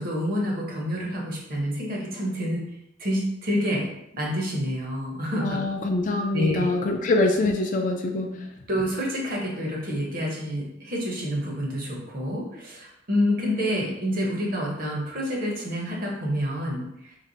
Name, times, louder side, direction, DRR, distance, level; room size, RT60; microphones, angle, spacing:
voice 1, 0.0-2.6 3.0-3.9 4.1-5.6 6.3-6.6 8.7-17.2, equal, 50° right, -2 dB, 0.9 m, -28 dB
voice 2, 5.4-8.3, left 2 dB, 45° left, 3 dB, 0.4 m, -24 dB
3.2 x 2.1 x 3.9 m, 0.81 s
head